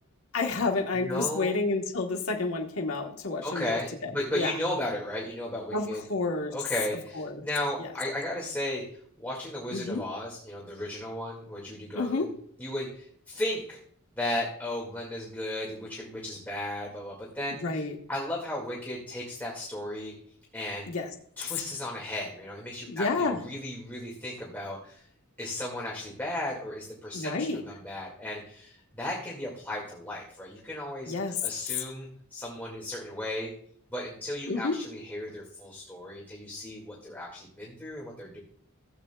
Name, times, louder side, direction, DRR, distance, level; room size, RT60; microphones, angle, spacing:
voice 1, 0.3-4.6 5.7-6.5 6.9-7.4 7.8-7.9 9.7-10.0 11.9-12.3 17.5-18.0 20.9-21.1 22.8-23.4 27.1-27.6 31.0-31.4 31.8-31.9 34.5-34.7, left 3 dB, 85° left, 2 dB, 1.1 m, -30 dB
voice 2, 1.0-1.6 3.4-6.0 6.5-8.8 9.2-12.3 12.6-13.8 14.1-17.8 18.1-20.1 20.5-20.9 21.4-25.0 25.4-27.3 27.6-31.1 31.4-33.5 33.9-38.4, left 1 dB, 10° left, -4 dB, 1.9 m, -35 dB
16.0 x 8.1 x 2.2 m, 0.63 s
head